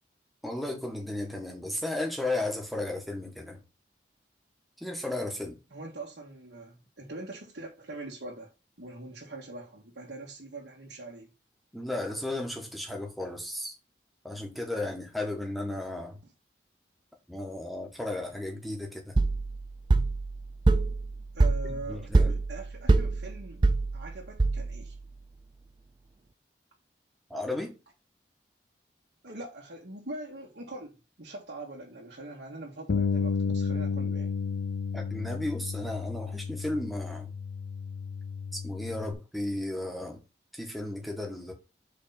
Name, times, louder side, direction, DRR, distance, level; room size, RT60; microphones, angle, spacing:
voice 1, 0.4-3.6 4.8-5.6 11.7-13.7 14.2-16.2 17.3-19.1 21.9-22.3 27.3-27.8 34.9-37.3 38.5-40.2 40.5-41.5, left 1 dB, ahead, 1.4 m, -34 dB
voice 2, 5.7-8.5 8.8-11.3 16.2-16.3 21.3-23.6 23.9-25.0 29.2-34.3, right 2 dB, 80° right, 1.6 m, -42 dB
sound 1, 19.2-25.0, right 3 dB, 25° right, 0.4 m, -25 dB
Bass guitar, 32.9-39.1, left 5 dB, 65° left, 0.5 m, -32 dB
5.0 x 4.1 x 5.6 m
head